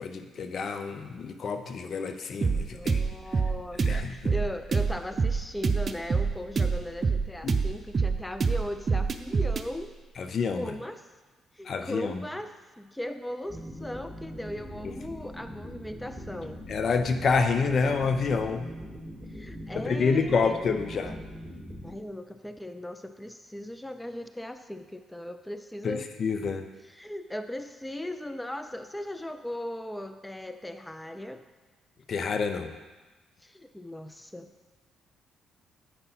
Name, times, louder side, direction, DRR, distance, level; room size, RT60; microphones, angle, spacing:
voice 1, 0.0-3.0 3.8-4.3 7.4-7.6 10.2-10.7 11.7-12.2 16.7-18.7 19.7-21.2 25.8-26.6 32.1-32.7, left 5 dB, 55° left, 7 dB, 0.6 m, -28 dB
sound 1, 2.4-9.7, right 5 dB, 45° right, 0.5 m, -26 dB
voice 2, 2.5-9.9 10.5-11.0 11.5-16.6 19.2-20.6 21.8-26.1 26.8-31.4 33.4-34.5, left 1 dB, 10° left, 8 dB, 0.5 m, -38 dB
sound 2, 13.5-21.9, equal, 5° right, 2.3 m, -42 dB
8.0 x 5.3 x 4.1 m, 1.3 s
hypercardioid pair, 45°, 0 cm